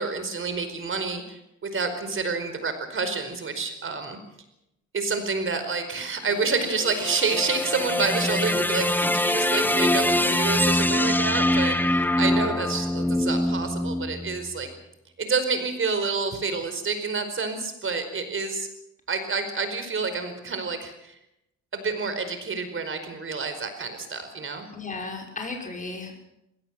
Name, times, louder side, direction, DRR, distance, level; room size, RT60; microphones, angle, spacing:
voice 1, 0.0-4.2 4.9-14.7 15.2-18.7 19.1-21.2 21.7-24.7, right 4 dB, 45° right, 9 dB, 4.8 m, -28 dB
sound 1, 6.3-14.6, left 1 dB, 5° left, 0.9 m, -24 dB
voice 2, 24.7-26.2, left 3 dB, 25° left, 1 dB, 6.3 m, -34 dB
21.0 x 17.5 x 7.8 m, 0.86 s
cardioid pair, 90°, 30 cm